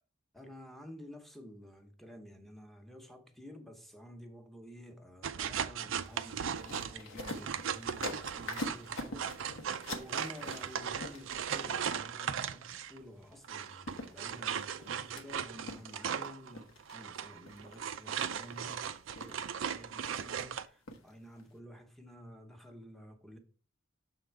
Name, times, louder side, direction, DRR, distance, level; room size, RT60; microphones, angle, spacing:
voice 1, 0.3-9.3 9.8-23.4, equal, ahead, 0.9 m, -51 dB
sound 1, 5.2-13.0 13.4-20.7, right 8 dB, 75° right, 0.4 m, -38 dB
sound 2, 5.9-11.9 13.5-13.6 13.9-15.2 15.7-16.3 16.5-16.9 17.5-17.8 18.1-18.7 19.2-19.6 20.0-20.4 20.9-21.1 21.4-21.5, left 2 dB, 90° left, 1.1 m, -44 dB
7.0 x 3.7 x 4.5 m
head